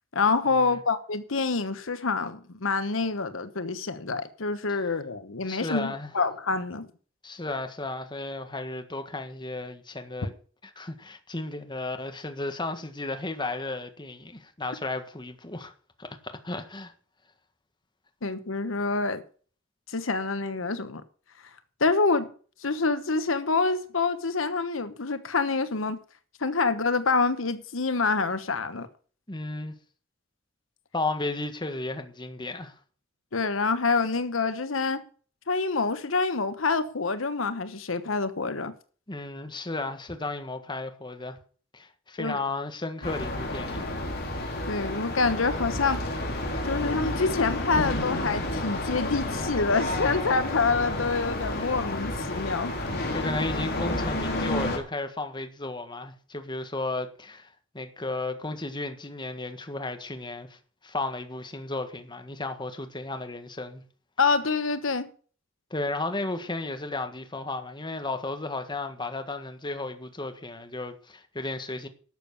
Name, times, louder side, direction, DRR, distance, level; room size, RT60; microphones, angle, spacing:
voice 1, 0.1-6.9 18.2-19.2 19.9-21.0 21.8-22.3 22.6-26.0 26.4-28.9 33.3-35.0 35.5-38.7 42.2-42.4 44.7-46.0 46.6-52.7 64.2-65.1, left 4 dB, 85° left, 1.1 m, -26 dB
voice 2, 5.5-6.1 7.2-10.3 10.6-15.7 16.0-16.9 29.3-29.7 30.9-32.8 39.1-41.4 41.7-43.9 53.1-63.8 65.7-71.9, left 2 dB, 25° left, 1.6 m, -34 dB
sound 1, 43.0-54.8, left 1 dB, 55° left, 3.7 m, -30 dB
12.0 x 7.2 x 7.0 m
head